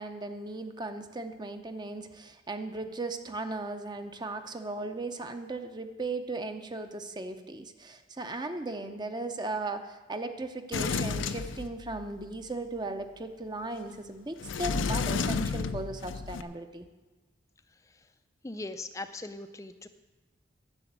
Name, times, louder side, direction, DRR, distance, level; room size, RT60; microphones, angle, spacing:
voice 1, 0.0-16.9, right 2 dB, 20° right, 8 dB, 0.7 m, -37 dB
Sliding door, 10.7-12.2 14.4-16.4, left 5 dB, 85° left, 0.6 m, -31 dB
voice 2, 18.4-19.9, left 2 dB, 15° left, 10 dB, 0.4 m, -40 dB
10.5 x 6.9 x 9.3 m, 1.2 s
head